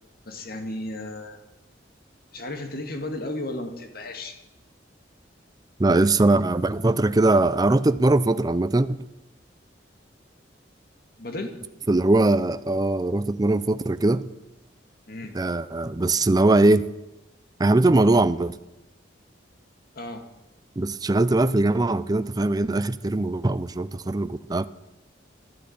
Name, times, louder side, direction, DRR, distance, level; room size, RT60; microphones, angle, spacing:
voice 1, 0.3-1.4 2.3-4.4 11.2-11.6 15.1-15.4 20.0-20.3, left 1 dB, 55° left, 2.1 m, -34 dB
voice 2, 5.8-9.0 11.9-14.2 15.3-16.8 17.6-18.6 20.8-24.7, right 2 dB, 20° right, 0.5 m, -21 dB
12.0 x 12.0 x 8.7 m
head